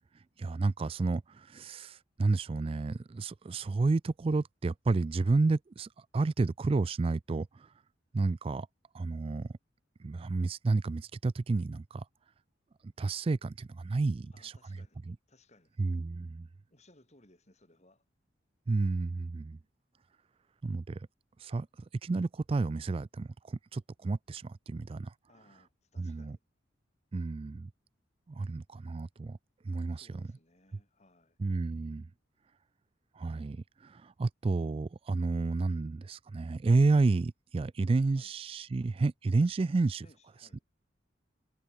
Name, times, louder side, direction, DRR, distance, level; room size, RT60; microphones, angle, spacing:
voice 1, 0.1-7.7 8.1-8.7 8.9-9.5 10.0-12.1 12.8-14.8 15.1-15.2 15.8-16.5 18.7-19.6 20.6-21.1 21.4-21.7 22.0-25.1 26.0-26.4 27.1-27.7 28.3-29.4 29.6-30.3 31.4-32.1 33.1-40.1 40.5-40.6, right 3 dB, 30° right, 0.3 m, -31 dB
voice 2, 14.3-15.0 15.3-15.8 16.7-18.0 25.3-26.4 29.9-31.4 38.2-38.3 40.0-40.6, left 2 dB, 35° left, 6.9 m, -63 dB
head